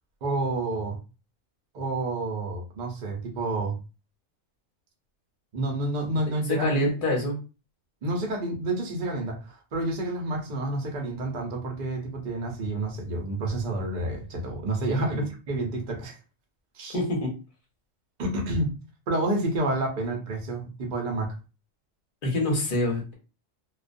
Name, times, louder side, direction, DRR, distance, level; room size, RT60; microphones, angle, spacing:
voice 1, 0.2-1.0 1.7-3.8 5.5-6.7 8.0-16.2 16.7-17.0 18.2-18.7 19.1-21.3, right 2 dB, 45° right, 1 dB, 0.6 m, -29 dB
voice 2, 6.5-7.4 15.1-15.3 16.9-17.3 22.2-23.1, left 1 dB, 45° left, -1 dB, 0.9 m, -25 dB
2.3 x 2.1 x 2.5 m, 0.31 s
omnidirectional pair, 1.3 m